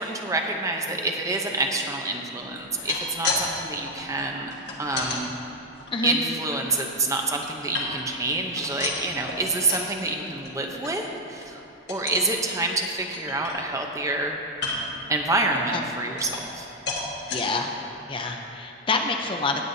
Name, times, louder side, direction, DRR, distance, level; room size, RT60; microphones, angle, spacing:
voice 1, 0.0-4.5 4.8-5.3 6.0-11.6 11.9-14.4 15.1-16.7, right 2 dB, 15° right, 2 dB, 0.7 m, -27 dB
sound 1, 2.6-3.4 3.7-5.2 5.7-6.7 7.2-8.2 8.5-9.9 10.3-10.5 10.8-10.9 11.3-11.5 11.9-12.3 12.8-12.9 13.1-13.9 14.5-15.0 15.5-16.6 16.9-17.4 18.0-18.1 18.4-18.5, left 3 dB, 70° left, 1.5 m, -33 dB
voice 2, 17.3-17.7 18.1-19.6, left 3 dB, 30° left, 3 dB, 0.6 m, -27 dB
18.0 x 8.2 x 2.7 m, 2.8 s
head